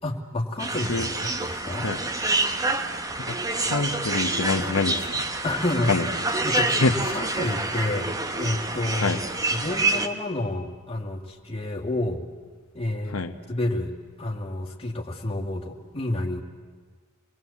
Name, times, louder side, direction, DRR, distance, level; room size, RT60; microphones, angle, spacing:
voice 1, 0.0-1.9 5.4-5.9 6.4-9.2 9.5-12.2 12.7-13.2 13.5-13.9 14.2-16.4, left 1 dB, 30° left, 0 dB, 2.2 m, -29 dB
sound 1, 0.6-10.1, right 2 dB, 15° right, 1.0 m, -27 dB
voice 2, 3.7-5.3 5.9-6.1 6.7-7.2 9.0-9.2 13.1-13.3, left 3 dB, 85° left, 6 dB, 1.0 m, -26 dB
26.0 x 20.5 x 8.5 m, 1.5 s
head